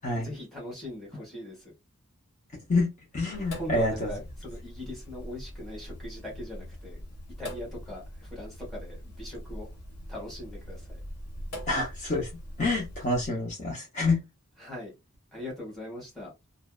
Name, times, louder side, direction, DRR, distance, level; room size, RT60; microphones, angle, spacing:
voice 1, 0.2-1.7 3.6-7.0 7.4-9.7 10.1-11.0 14.6-14.9 15.3-16.3, left 1 dB, ahead, 1.1 m, -40 dB
voice 2, 3.1-4.1 11.7-12.3 12.6-14.2, left 2 dB, 35° left, 0.7 m, -27 dB
Sink (filling or washing), 3.3-13.3, equal, 75° left, 1.2 m, -42 dB
2.6 x 2.1 x 2.3 m
head